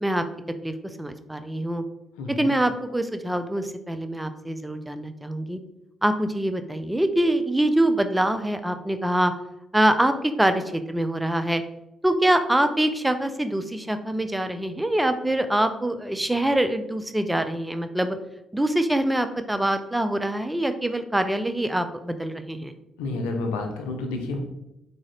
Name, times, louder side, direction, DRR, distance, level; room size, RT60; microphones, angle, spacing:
voice 1, 0.6-1.8 2.3-5.6 6.0-9.3 9.7-11.6 12.0-18.2 18.5-22.7, right 1 dB, 10° right, 9 dB, 0.4 m, -24 dB
voice 2, 2.2-2.5 23.0-24.4, left 3 dB, 85° left, 4 dB, 0.5 m, -29 dB
3.6 x 2.7 x 3.2 m, 0.86 s
hypercardioid pair, 50°, 0 cm